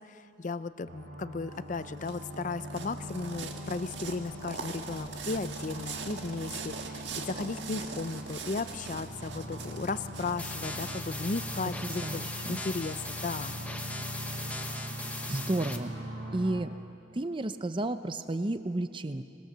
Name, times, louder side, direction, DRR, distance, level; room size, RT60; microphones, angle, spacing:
voice 1, 0.0-13.6, left 3 dB, 40° left, 14 dB, 0.5 m, -35 dB
sound 1, 0.9-16.6, equal, 90° right, 2.5 m, -41 dB
sound 2, 1.6-12.4, right 4 dB, 65° right, 1.6 m, -42 dB
sound 3, 10.4-15.8, left 2 dB, 10° left, 1.0 m, -39 dB
voice 2, 11.8-12.6 15.3-15.9 16.3-16.7 17.1-19.2, right 2 dB, 25° right, 10 dB, 0.6 m, -32 dB
25.5 x 20.0 x 6.7 m, 2.6 s
head